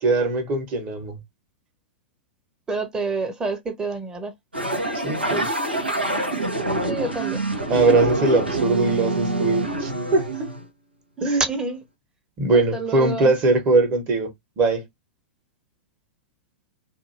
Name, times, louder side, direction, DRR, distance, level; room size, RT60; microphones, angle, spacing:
voice 1, 0.0-1.2 4.9-5.5 7.7-10.5 11.2-11.4 12.4-14.9, right 3 dB, 30° right, 1.2 m, -21 dB
voice 2, 2.7-4.3 6.8-7.4 11.2-11.8 12.5-13.3, right 3 dB, 15° right, 0.9 m, -28 dB
sound 1, 4.5-10.6, right 2 dB, 85° right, 0.9 m, -26 dB
2.7 x 2.7 x 2.7 m
figure-of-eight pair, 100°, 6 cm